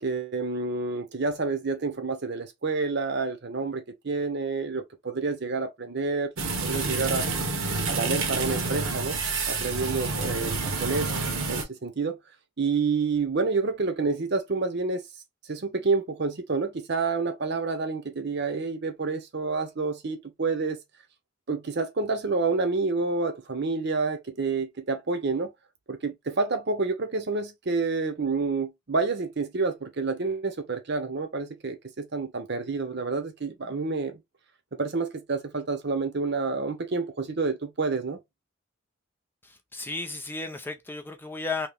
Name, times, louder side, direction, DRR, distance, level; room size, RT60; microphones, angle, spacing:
voice 1, 0.0-6.3 6.6-7.3 7.9-9.2 9.5-11.1 11.5-12.2 12.6-15.0 15.5-20.8 21.5-25.5 25.9-34.2 34.8-38.2, right 4 dB, 55° right, 0.8 m, -28 dB
sound 1, 6.4-11.6, right 3 dB, 80° right, 1.0 m, -28 dB
voice 2, 39.4-41.7, left 3 dB, 10° left, 0.3 m, -34 dB
2.8 x 2.8 x 3.4 m
head